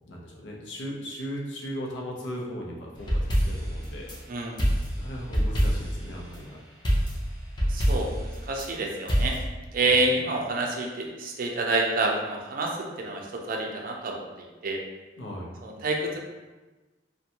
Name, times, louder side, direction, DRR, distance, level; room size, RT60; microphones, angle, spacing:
voice 1, 0.1-4.1 5.0-6.6 9.8-10.1 15.2-15.5, equal, 75° left, -2 dB, 0.6 m, -37 dB
sound 1, 3.0-4.2 4.6-6.0 6.8-8.7 9.1-9.4, equal, 25° left, 0.6 m, -25 dB
voice 2, 4.3-4.7 7.7-9.3 9.7-14.8 15.6-16.2, right 2 dB, 50° right, 0 dB, 0.4 m, -28 dB
2.6 x 2.2 x 2.8 m, 1.2 s
head